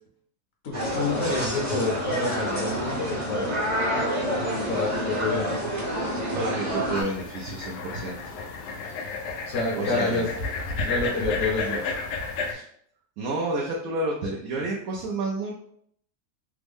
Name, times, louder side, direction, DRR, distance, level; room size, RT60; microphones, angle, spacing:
voice 1, 0.6-3.7 4.6-5.6 9.5-10.3 10.8-11.9, left 3 dB, 65° left, -1 dB, 1.0 m, -28 dB
sound 1, 0.7-7.0, equal, 35° right, 0.9 m, -28 dB
voice 2, 6.3-8.2 8.8-9.0 9.7-10.3 12.4-12.7 13.2-15.5, right 2 dB, 70° right, -2 dB, 0.9 m, -30 dB
sound 2, 7.0-12.5, left 3 dB, 90° left, 1.1 m, -32 dB
3.4 x 2.0 x 3.4 m, 0.65 s
omnidirectional pair, 1.7 m